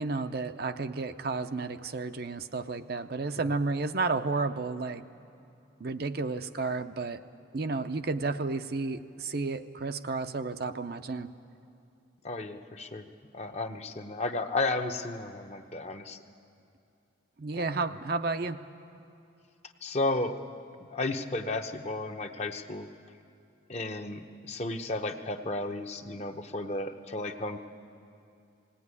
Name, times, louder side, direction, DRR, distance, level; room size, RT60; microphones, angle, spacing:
voice 1, 0.0-5.0 5.8-7.2 7.5-11.3 17.4-18.6, right 3 dB, 50° right, 8 dB, 0.6 m, -32 dB
voice 2, 12.2-13.0 13.3-16.2 17.5-17.7 19.8-20.3 20.9-22.9 23.7-27.6, left 2 dB, 35° left, 6 dB, 0.9 m, -33 dB
19.5 x 17.0 x 9.7 m, 2.6 s
head